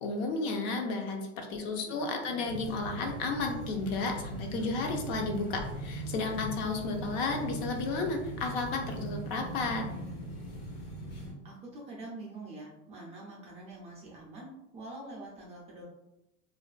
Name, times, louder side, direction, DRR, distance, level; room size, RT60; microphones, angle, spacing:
voice 1, 0.0-9.8, left 3 dB, 60° left, 3 dB, 0.6 m, -33 dB
voice 2, 1.9-2.5 11.4-15.8, right 2 dB, 20° right, -4 dB, 0.3 m, -45 dB
sound 1, 2.4-11.3, right 1 dB, 80° left, 1.1 m, -40 dB
2.4 x 2.2 x 2.3 m, 0.89 s
supercardioid pair, 135°, 35 cm